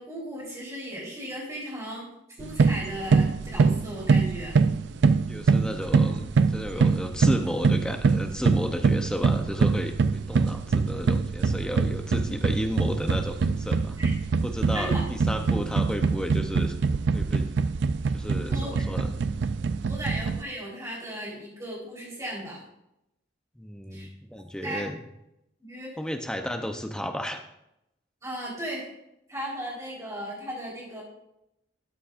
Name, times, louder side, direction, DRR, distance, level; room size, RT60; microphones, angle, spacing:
voice 1, 0.0-2.1 2.4-4.5 14.0-14.1 14.7-15.0 18.5-18.7 19.9-22.6 23.9-24.1 24.6-24.8 25.6-25.9 28.2-28.9 29.3-31.0, equal, 15° right, -5 dB, 3.9 m, -36 dB
sound 1, 2.4-20.4, right 4 dB, 60° right, 0.4 m, -24 dB
voice 2, 5.3-14.0 14.4-16.8 17.1-17.5 18.1-19.2 19.8-20.0 23.6-25.0 26.0-27.4, equal, 5° left, 5 dB, 0.6 m, -33 dB
13.0 x 9.8 x 2.5 m, 0.84 s
head